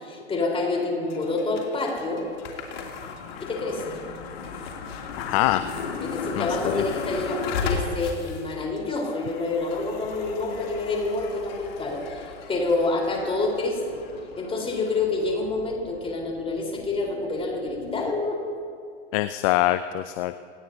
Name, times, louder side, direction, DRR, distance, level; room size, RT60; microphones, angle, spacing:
voice 1, 0.0-2.3 3.4-3.9 6.0-14.0 14.4-18.4, left 3 dB, 15° left, -1 dB, 4.1 m, -27 dB
sound 1, 1.1-18.1, left 5 dB, 55° left, 3.0 m, -36 dB
voice 2, 5.2-5.6 6.4-6.8 19.1-20.3, left 15 dB, 30° left, 12 dB, 0.4 m, -24 dB
27.0 x 18.5 x 2.8 m, 2.2 s
figure-of-eight pair, 100°, 36 cm